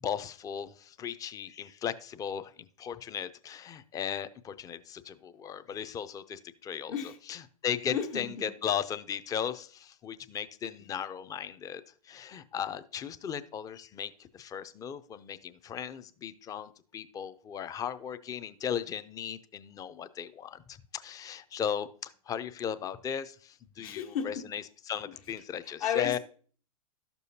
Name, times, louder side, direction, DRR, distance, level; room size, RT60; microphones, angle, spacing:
voice 1, 0.0-6.9 7.3-24.6 24.9-26.2, left 8 dB, 20° left, 0.4 m, -36 dB
voice 2, 7.9-8.6 10.8-10.9 23.8-24.5 25.0-26.2, left 8 dB, 70° left, 1.4 m, -35 dB
12.0 x 6.8 x 2.7 m
hypercardioid pair, 125°, 19 cm